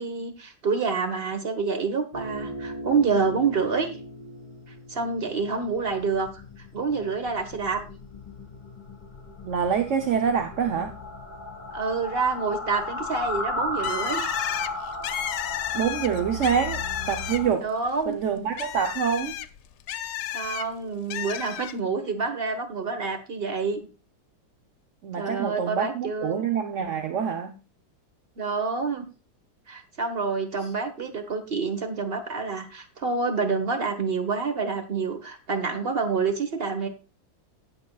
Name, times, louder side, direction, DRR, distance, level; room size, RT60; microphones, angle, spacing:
voice 1, 0.0-4.0 4.9-6.4 6.7-7.8 11.7-14.3 17.6-18.2 20.3-23.9 25.2-26.4 28.4-29.0 29.7-36.9, right 4 dB, 30° right, 7 dB, 1.6 m, -27 dB
sound 1, 2.1-17.5, left 1 dB, 25° left, 1.7 m, -35 dB
voice 2, 9.4-11.0 15.7-16.8 17.1-17.7 18.1-19.3 25.0-27.6 30.6-30.7, right 7 dB, 50° right, 5 dB, 1.0 m, -26 dB
Bird, 13.8-17.7 18.0-20.6 21.1-21.7, left 12 dB, 70° left, 1.2 m, -33 dB
18.0 x 7.0 x 2.4 m, 0.32 s
omnidirectional pair, 2.1 m